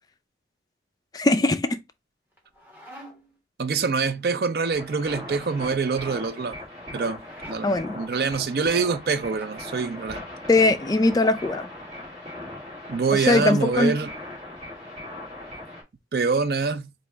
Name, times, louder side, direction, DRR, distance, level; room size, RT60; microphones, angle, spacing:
voice 1, 1.1-1.8 7.6-8.0 10.5-11.7 13.1-14.0, left 2 dB, 20° left, 0.3 m, -21 dB
sound 1, 2.3-3.4 5.0-5.6 7.1-7.6 9.1-9.5 10.8-11.4, equal, 10° right, 1.3 m, -47 dB
voice 2, 3.6-6.6 6.9-10.2 12.9-14.1 16.1-16.9, right 4 dB, 60° right, 0.4 m, -25 dB
sound 2, 4.5-15.8, left 1 dB, 35° right, 2.4 m, -39 dB
4.0 x 2.8 x 3.3 m
head